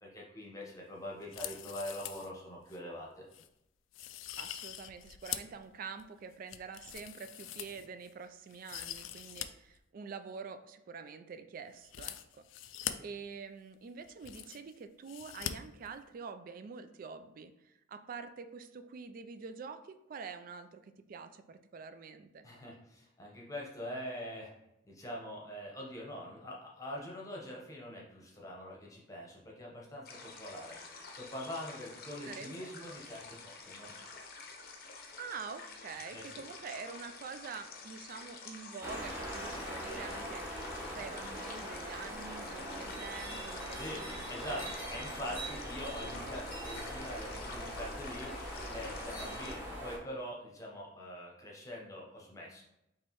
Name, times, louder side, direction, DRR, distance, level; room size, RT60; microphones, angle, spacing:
voice 1, 0.0-3.2 22.4-24.5 24.8-33.9 36.1-36.3 43.7-52.6, equal, 15° left, -3 dB, 0.9 m, -44 dB
sound 1, 1.2-2.3 2.7-2.8 3.3-3.5 3.9-5.6 6.0-8.1 8.5-9.5 9.7-9.8 11.8-12.9 13.7-13.8 14.0-14.7 15.1-15.5 15.8-15.9, left 12 dB, 80° left, 0.3 m, -43 dB
voice 2, 4.4-12.4 13.0-22.5 32.2-32.7 35.2-40.6 40.9-44.7, right 5 dB, 45° right, 9 dB, 0.3 m, -46 dB
sound 2, 30.0-49.5, left 4 dB, 50° left, 0.6 m, -49 dB
sound 3, 38.8-50.0, equal, 10° right, 1.1 m, -41 dB
4.5 x 3.1 x 3.0 m, 0.87 s
head